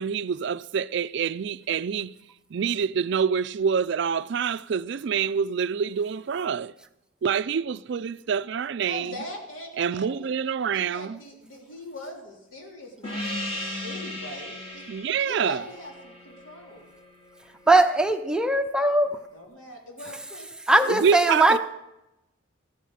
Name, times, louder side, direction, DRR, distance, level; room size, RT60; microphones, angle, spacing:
voice 1, 0.0-2.2 2.5-6.7 7.2-9.2 9.8-11.2 14.9-15.6 20.9-21.6, right 6 dB, 60° right, 0.4 m, -26 dB
voice 2, 8.8-10.3 10.7-14.8 15.2-16.9 19.3-20.5 20.8-21.3, left 1 dB, 80° left, 3.3 m, -41 dB
Gong, 13.0-18.0, left 1 dB, 30° left, 1.9 m, -37 dB
voice 3, 17.7-19.2 20.7-21.6, right 2 dB, 5° right, 0.6 m, -20 dB
14.5 x 10.0 x 6.4 m
head